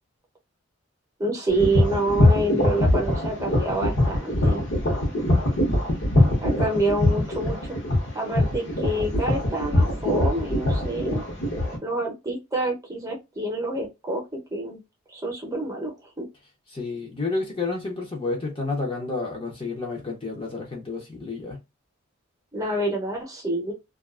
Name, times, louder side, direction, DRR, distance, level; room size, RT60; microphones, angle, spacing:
voice 1, 1.2-4.6 6.4-7.8 8.1-11.2 11.8-14.2 14.5-14.8 15.1-16.3 22.5-23.7, right 1 dB, 15° right, 0.7 m, -27 dB
sound 1, 1.5-11.8, left 1 dB, 65° left, 1.0 m, -22 dB
voice 2, 16.7-21.6, left 3 dB, 25° left, 0.6 m, -30 dB
2.5 x 2.3 x 2.3 m
head